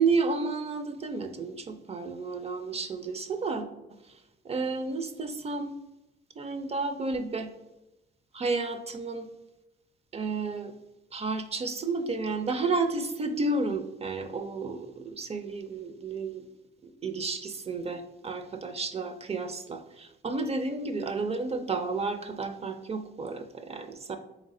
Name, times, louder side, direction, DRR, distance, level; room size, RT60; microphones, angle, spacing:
voice 1, 0.0-3.7 4.4-5.7 6.4-7.5 8.3-9.3 10.1-10.7 11.1-16.4 17.0-24.2, right 3 dB, 30° right, 8 dB, 0.4 m, -31 dB
3.5 x 3.2 x 3.6 m, 0.96 s
cardioid pair, 90°, 20 cm